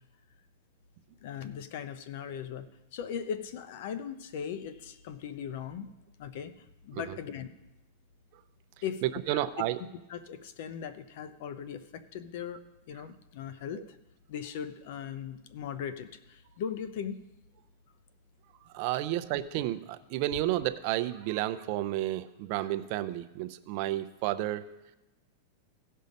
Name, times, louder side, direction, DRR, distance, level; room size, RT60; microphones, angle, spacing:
voice 1, 1.2-5.9 6.2-7.5 8.8-9.5 10.1-12.6 12.9-13.8 14.3-17.2, left 8 dB, 60° left, 12 dB, 0.7 m, -39 dB
voice 2, 9.0-9.8 18.7-24.7, right 14 dB, 50° right, 12 dB, 0.5 m, -31 dB
16.0 x 5.5 x 5.2 m, 0.95 s
supercardioid pair, 150°, 0 cm